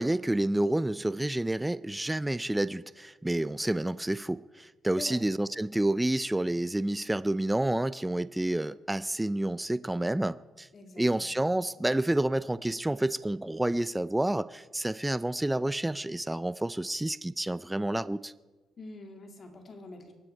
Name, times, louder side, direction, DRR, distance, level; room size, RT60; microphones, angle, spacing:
voice 1, 0.0-10.7 11.0-18.3, right 1 dB, 10° right, 16 dB, 0.4 m, -29 dB
voice 2, 10.7-11.3 18.8-20.1, left 2 dB, 45° left, 4 dB, 2.3 m, -45 dB
23.0 x 9.8 x 4.5 m, 1.3 s
cardioid pair, 90°, 0 cm